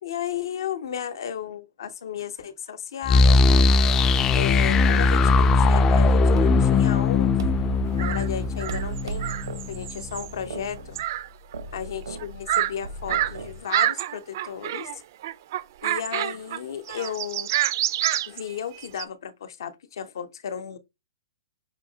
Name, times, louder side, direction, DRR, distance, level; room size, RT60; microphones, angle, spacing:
voice 1, 0.0-3.7 4.3-7.5 7.9-9.3 9.7-11.0 11.7-15.0 15.8-17.5 18.3-20.8, left 8 dB, 70° left, 0.7 m, -34 dB
sound 1, 3.1-9.9, left 3 dB, 20° left, 0.3 m, -19 dB
sound 2, 5.3-13.6, right 4 dB, 85° right, 0.9 m, -37 dB
sound 3, 8.0-8.3 8.6-10.3 10.9-11.3 11.5-11.6 12.2-12.7 13.1-13.4 13.7-15.0 15.2-16.6 16.9-19.0, right 13 dB, 55° right, 0.4 m, -27 dB
5.6 x 2.8 x 2.7 m
hypercardioid pair, 145°, 2 cm